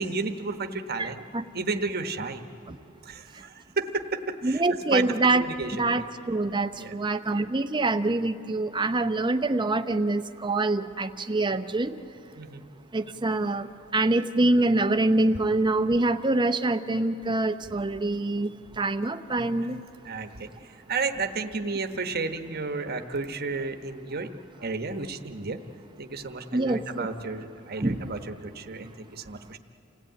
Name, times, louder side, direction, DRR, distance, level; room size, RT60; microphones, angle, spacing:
voice 1, 0.0-1.2 1.5-2.4 3.0-4.6 4.9-5.0 5.3-6.0 6.7-6.9 12.3-12.7 20.0-25.6 26.0-29.6, right 4 dB, 50° right, 6 dB, 1.1 m, -32 dB
voice 2, 1.0-1.4 4.4-5.4 5.8-11.9 12.9-13.7 13.9-18.5 18.8-19.8 26.5-27.1 27.8-28.0, right 2 dB, 25° right, 9 dB, 0.7 m, -25 dB
28.0 x 16.5 x 9.1 m, 2.9 s
head